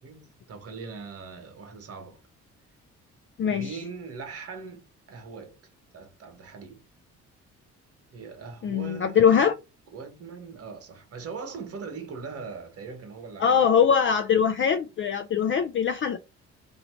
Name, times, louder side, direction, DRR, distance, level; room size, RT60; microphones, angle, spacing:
voice 1, 0.0-2.2 3.5-5.6 5.9-6.8 8.1-9.5 9.9-13.9, right 5 dB, 50° right, 1.3 m, -40 dB
voice 2, 3.4-3.8 8.6-9.5 13.4-16.2, left 7 dB, 40° left, 0.4 m, -22 dB
2.8 x 2.7 x 4.3 m
cardioid pair, 90°, 30 cm